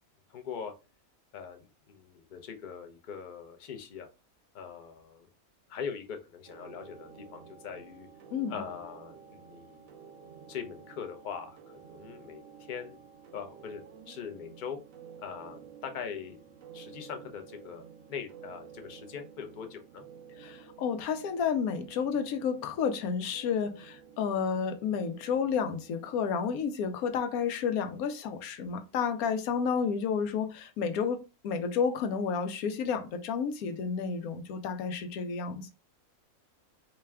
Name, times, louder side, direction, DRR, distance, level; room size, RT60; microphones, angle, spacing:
voice 1, 0.3-0.7 1.3-4.1 4.5-5.3 5.7-8.1 8.5-9.9 10.5-13.0 13.3-14.8 15.2-20.0, left 7 dB, 50° left, 0.5 m, -42 dB
sound 1, 6.5-26.1, right 7 dB, 75° right, 1.0 m, -52 dB
voice 2, 8.3-8.6 20.4-35.7, left 6 dB, 85° left, 1.1 m, -31 dB
4.0 x 2.2 x 3.3 m
omnidirectional pair, 1.5 m